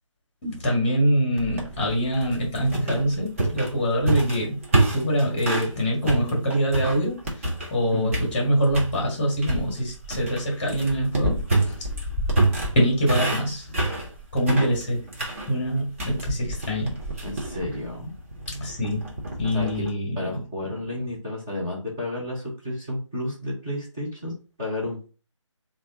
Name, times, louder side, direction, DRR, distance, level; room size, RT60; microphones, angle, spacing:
voice 1, 0.4-4.6 4.9-7.3 7.7-11.8 12.7-13.9 14.3-15.0 15.5-17.0 18.5-19.1 19.4-20.4, equal, 20° left, 0 dB, 1.2 m, -24 dB
sound 1, 1.4-5.7 6.1-7.8 8.1-8.9 9.4-19.9, right 2 dB, 25° right, 0.8 m, -27 dB
voice 2, 7.9-8.2 17.2-18.1 19.5-19.8 20.2-25.1, left 1 dB, 5° right, -6 dB, 0.4 m, -32 dB
3.1 x 2.4 x 3.7 m, 0.36 s
figure-of-eight pair, 160°, 17 cm